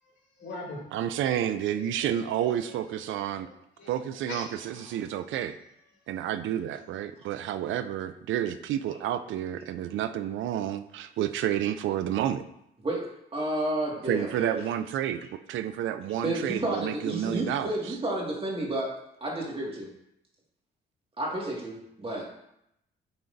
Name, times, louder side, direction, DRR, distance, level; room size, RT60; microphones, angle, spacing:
voice 1, 0.0-0.8 1.1-1.4 1.7-3.9 4.3-5.2 5.5-5.6 6.7-6.8, left 3 dB, 65° left, -4 dB, 2.6 m, -45 dB
voice 2, 0.9-3.5 3.9-5.6 6.1-12.4 14.1-18.0, right 11 dB, 75° right, 11 dB, 0.4 m, -30 dB
voice 3, 13.3-14.6 16.2-18.9 19.2-19.9 21.2-22.3, right 1 dB, 30° right, -2 dB, 2.0 m, -31 dB
9.4 x 4.4 x 2.7 m, 0.80 s
cardioid pair, 90°, 20 cm